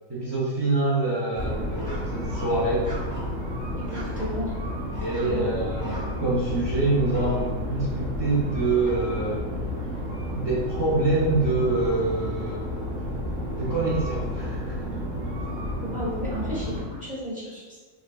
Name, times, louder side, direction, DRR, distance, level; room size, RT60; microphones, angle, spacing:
voice 1, 0.1-2.9 5.0-9.5 10.3-12.7 13.5-14.8 15.2-15.3, right 2 dB, 40° right, -9 dB, 0.3 m, -26 dB
sound 1, 1.3-16.8, left 1 dB, 20° left, 1.2 m, -31 dB
voice 2, 3.8-4.5 5.2-5.5 15.8-17.8, equal, 5° right, -7 dB, 0.9 m, -33 dB
5.0 x 2.3 x 2.3 m, 1.4 s
omnidirectional pair, 1.5 m